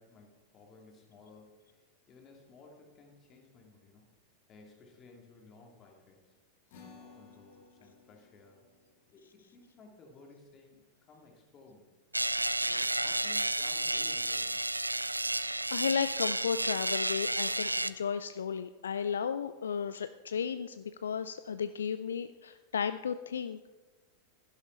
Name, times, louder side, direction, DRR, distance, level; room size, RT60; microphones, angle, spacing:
voice 1, 0.0-4.1 4.5-6.3 6.8-8.6 9.1-11.9 12.6-14.8, left 3 dB, 30° left, 1 dB, 2.4 m, -56 dB
sound 1, 6.7-13.3, left 5 dB, 50° left, 2.0 m, -60 dB
sound 2, 12.1-17.9, right 1 dB, 85° right, 0.3 m, -31 dB
voice 2, 15.1-23.7, left 7 dB, 70° left, 12 dB, 0.3 m, -34 dB
12.0 x 10.5 x 4.4 m, 1.2 s
figure-of-eight pair, 90°, 0 cm